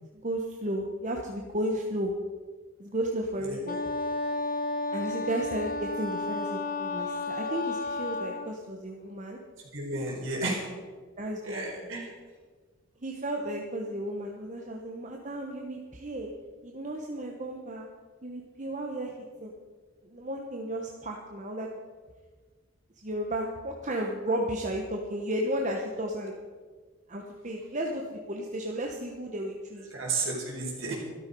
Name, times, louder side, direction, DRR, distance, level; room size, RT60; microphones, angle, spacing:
voice 1, 0.2-2.1 2.8-3.8 4.9-9.4 10.2-10.5 11.2-11.9 13.0-16.3 16.6-17.9 18.2-19.1 19.4-19.5 20.0-21.7 23.0-26.3 27.1-29.9, right 1 dB, 35° right, 0 dB, 1.1 m, -33 dB
Wind instrument woodwind instrument, 3.7-8.5, left 2 dB, 40° left, 0.9 m, -32 dB
voice 2, 9.7-10.7 11.4-12.1 29.9-30.9, right 2 dB, 60° right, -2 dB, 4.5 m, -32 dB
13.0 x 12.5 x 5.4 m, 1.5 s
head